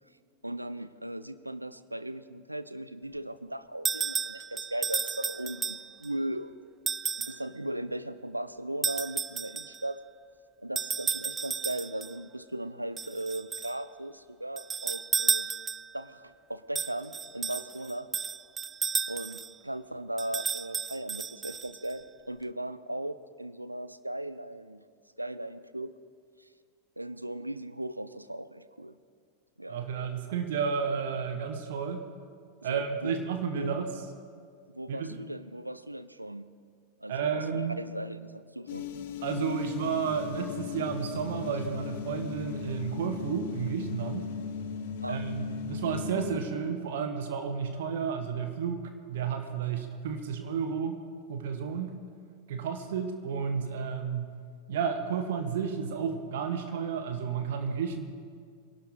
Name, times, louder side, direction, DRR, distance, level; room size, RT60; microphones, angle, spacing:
voice 1, 0.4-6.6 7.1-10.0 10.6-15.5 15.9-18.1 19.0-24.8 25.2-25.9 26.4-26.5 27.0-29.0 29.6-29.8 32.6-33.2 33.5-33.7 34.7-36.5 37.0-38.9 45.0-45.2, right 1 dB, 85° right, 15 dB, 0.6 m, -37 dB
sound 1, 3.9-6.1 6.9-7.5 8.8-9.8 10.8-12.1 13.0-13.8 14.6-16.0 16.8-19.5 20.2-21.9, right 6 dB, 20° right, 0.3 m, -33 dB
voice 2, 29.7-32.1 32.6-33.9 34.9-35.1 37.1-37.8 39.2-44.3 45.1-48.8 49.1-51.0 51.3-52.0 52.5-54.3 54.7-58.0, right 6 dB, 55° right, 6 dB, 1.3 m, -32 dB
sound 2, 38.7-46.4, left 7 dB, 55° left, 0.9 m, -37 dB
26.0 x 12.0 x 3.8 m, 2.1 s
figure-of-eight pair, 90°, 0 cm